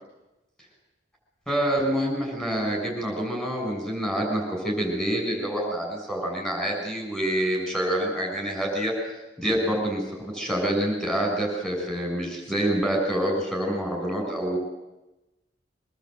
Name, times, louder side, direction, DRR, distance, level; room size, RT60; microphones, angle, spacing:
voice 1, 1.5-8.9 9.4-14.6, right 1 dB, 5° left, 0 dB, 6.6 m, -27 dB
23.5 x 20.5 x 8.0 m, 1.0 s
head